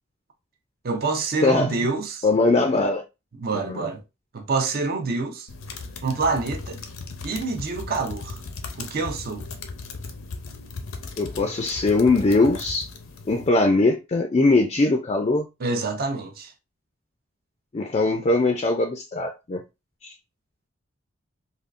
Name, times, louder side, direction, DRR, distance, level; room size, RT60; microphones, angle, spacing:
voice 1, 0.8-2.3 3.4-4.0 4.3-5.5 6.0-6.8 7.2-8.4 8.8-9.5 15.6-16.5, right 3 dB, 50° right, 0.6 m, -27 dB
voice 2, 1.4-1.7 2.2-3.0 3.5-3.9 11.2-12.9 13.3-15.5 17.7-19.6 20.0-20.1, left 2 dB, 30° left, 0.4 m, -21 dB
sound 1, 5.5-13.5, left 3 dB, 80° left, 0.6 m, -37 dB
3.5 x 2.3 x 2.5 m
head